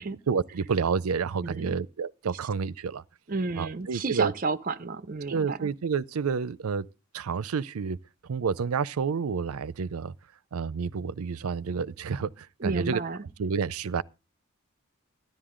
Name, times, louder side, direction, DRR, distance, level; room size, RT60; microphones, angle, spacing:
voice 1, 0.3-3.0 3.6-4.3 5.3-6.9 7.1-8.0 8.2-10.1 10.5-13.0 13.4-14.0, right 6 dB, 90° right, 0.5 m, -29 dB
voice 2, 1.4-1.8 3.3-5.7 12.6-13.2, right 3 dB, 40° right, 0.6 m, -31 dB
13.0 x 10.5 x 3.7 m
head